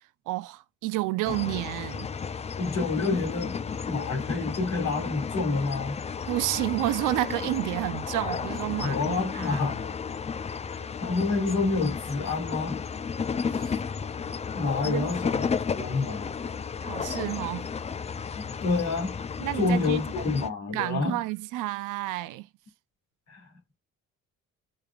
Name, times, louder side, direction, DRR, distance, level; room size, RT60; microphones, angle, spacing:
voice 1, 0.3-2.1 6.3-9.6 13.5-13.8 14.8-15.1 16.8-17.7 19.4-20.0 20.7-22.5, right 17 dB, 90° right, 0.5 m, -30 dB
sound 1, 1.2-20.5, left 6 dB, 20° left, 0.4 m, -33 dB
voice 2, 2.6-3.6 3.9-6.0 8.8-9.9 11.0-12.8 14.5-16.3 18.6-19.1 19.6-21.2 23.3-23.4, left 3 dB, 65° left, 2.2 m, -28 dB
4.9 x 3.3 x 2.3 m
cardioid pair, 90°, 30 cm